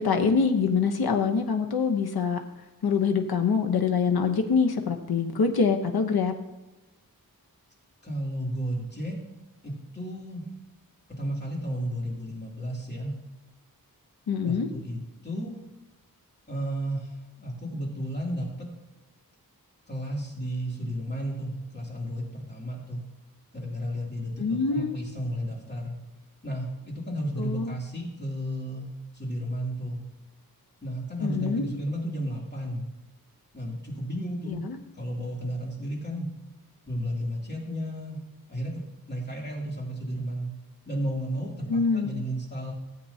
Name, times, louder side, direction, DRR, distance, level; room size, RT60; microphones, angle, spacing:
voice 1, 0.0-2.4 2.8-6.3 14.3-14.7 24.4-25.0 27.4-27.7 31.2-31.7 34.5-34.8 41.7-42.1, left 5 dB, 90° left, 5 dB, 0.9 m, -25 dB
voice 2, 8.0-9.2 9.6-10.4 11.1-13.1 14.4-15.5 16.5-18.7 19.9-23.0 23.5-26.0 26.4-28.9 29.1-30.0 30.8-32.8 33.5-34.6 34.9-36.3 36.9-38.2 38.5-38.8 39.1-40.5 40.9-42.7, equal, 30° left, -3 dB, 2.8 m, -33 dB
16.5 x 8.3 x 2.8 m, 1.1 s
wide cardioid pair, 120°, 36 cm